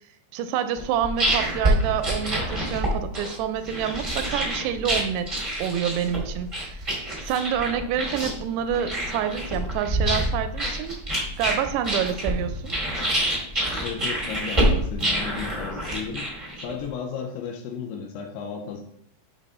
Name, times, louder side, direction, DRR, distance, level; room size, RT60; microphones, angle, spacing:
voice 1, 0.3-5.3 5.6-6.8 7.2-11.0 11.4-12.7, right 9 dB, 90° right, 10 dB, 2.7 m, -27 dB
sound 1, 0.8-16.9, right 1 dB, 45° right, 0.4 m, -27 dB
voice 2, 13.8-16.3 16.6-18.8, left 6 dB, 90° left, 2 dB, 2.7 m, -34 dB
7.5 x 3.6 x 4.1 m, 0.67 s
omnidirectional pair, 4.7 m